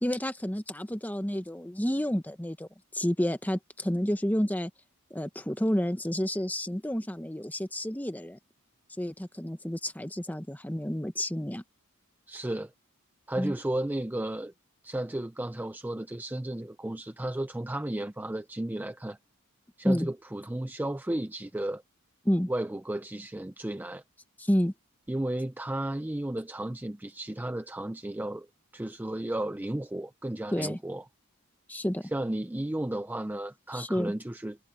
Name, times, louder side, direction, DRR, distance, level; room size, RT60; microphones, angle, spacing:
voice 1, 0.0-4.7 5.1-8.4 9.0-11.6 13.4-13.5 19.8-20.1 22.2-22.5 24.4-24.7 30.5-30.8 31.7-32.1 33.7-34.1, equal, 10° left, 1.2 m, -30 dB
voice 2, 12.3-12.7 13.3-14.5 14.8-19.2 19.8-21.8 22.5-24.0 25.1-28.5 28.7-31.0 32.1-34.6, right 1 dB, 10° right, 0.4 m, -33 dB
head